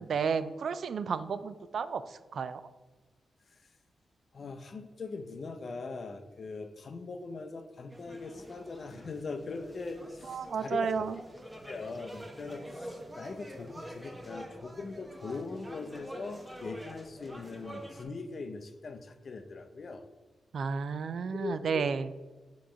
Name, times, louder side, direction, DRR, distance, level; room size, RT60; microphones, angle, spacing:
voice 1, 0.0-2.0 2.3-2.6 10.3-11.2 20.5-22.1, right 6 dB, 70° right, 13 dB, 0.3 m, -32 dB
voice 2, 4.3-11.1 11.7-20.1 21.4-21.9, left 4 dB, 55° left, 8 dB, 0.6 m, -41 dB
sound 1, 7.9-18.0, equal, 15° right, 1.0 m, -46 dB
7.1 x 3.1 x 4.9 m, 1.2 s
cardioid pair, 65°, 0 cm